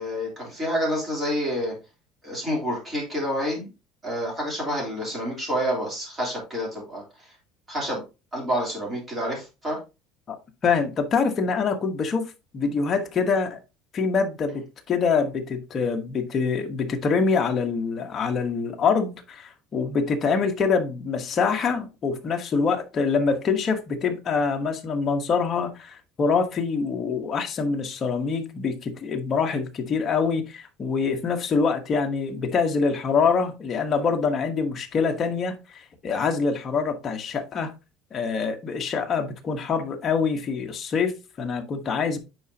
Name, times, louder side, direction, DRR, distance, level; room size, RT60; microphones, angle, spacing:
voice 1, 0.0-1.7 2.2-3.7 4.0-7.0 7.7-8.0 8.3-9.8, equal, 15° right, 3.2 m, -28 dB
voice 2, 10.6-13.6 13.9-37.7 38.1-42.2, left 5 dB, 25° left, 1.2 m, -25 dB
9.2 x 5.0 x 2.8 m
cardioid pair, 175°, 0 cm